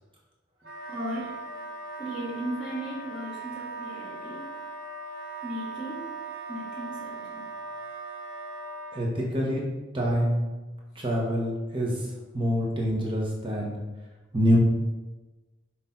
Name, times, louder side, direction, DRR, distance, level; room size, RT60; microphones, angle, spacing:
Wind instrument woodwind instrument, 0.6-9.0, right 3 dB, 50° right, 1.2 m, -39 dB
voice 1, 0.9-1.4 2.0-4.5 5.4-6.1 6.5-7.5, equal, 5° right, -7 dB, 1.1 m, -36 dB
voice 2, 8.9-9.6 9.9-10.4 10.9-12.1 12.3-13.8 14.3-14.6, equal, 25° right, -3 dB, 1.2 m, -26 dB
6.4 x 4.3 x 3.9 m, 1.2 s
head